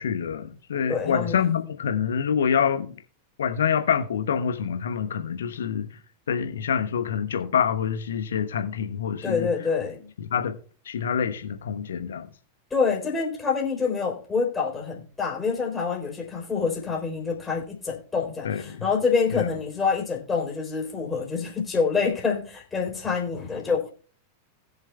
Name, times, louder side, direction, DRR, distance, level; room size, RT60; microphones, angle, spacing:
voice 1, 0.0-3.0 3.4-5.9 6.3-9.5 10.2-10.5 10.9-12.3 18.4-18.8 19.3-19.5, left 7 dB, 65° left, 1.1 m, -26 dB
voice 2, 0.9-1.4 9.2-10.1 12.7-23.9, left 5 dB, 15° left, 3.7 m, -26 dB
20.0 x 7.2 x 2.3 m
figure-of-eight pair, 90°, 0 cm